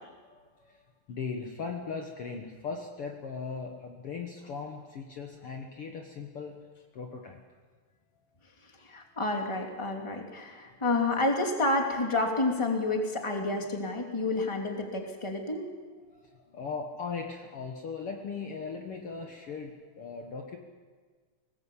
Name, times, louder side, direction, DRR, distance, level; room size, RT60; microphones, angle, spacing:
voice 1, 0.2-0.8 1.1-6.6 6.9-7.4 10.6-10.8 16.1-20.6, left 5 dB, 55° left, 2 dB, 2.1 m, -39 dB
voice 2, 8.8-15.7, left 2 dB, 10° left, 2 dB, 2.4 m, -29 dB
23.0 x 18.5 x 8.5 m, 1.5 s
omnidirectional pair, 3.5 m